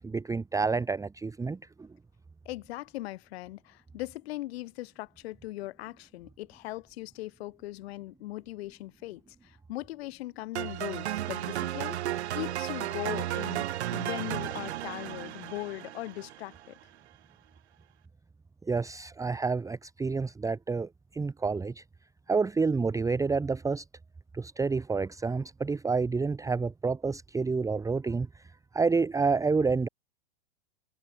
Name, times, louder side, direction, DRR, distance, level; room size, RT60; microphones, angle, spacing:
voice 1, 0.0-1.9 18.7-21.8 22.3-23.8 24.3-28.3 28.7-29.9, right 4 dB, 10° right, 1.2 m, -29 dB
voice 2, 2.4-12.0 12.3-16.7, left 17 dB, 65° left, 5.0 m, -39 dB
sound 1, 10.6-16.7, right 13 dB, 75° right, 4.1 m, -34 dB
hypercardioid pair, 120°, 33 cm